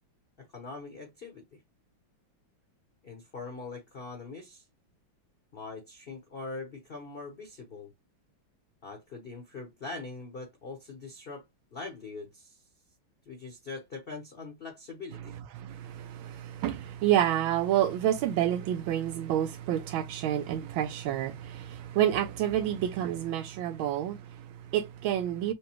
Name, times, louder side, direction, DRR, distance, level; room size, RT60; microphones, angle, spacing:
voice 1, 0.4-1.6 3.0-4.6 5.5-7.9 8.8-11.4 11.7-12.6 13.2-15.3, left 3 dB, 40° left, 0.9 m, -42 dB
voice 2, 15.6-25.5, right 11 dB, 85° right, 1.4 m, -29 dB
6.3 x 2.2 x 3.0 m
omnidirectional pair, 2.2 m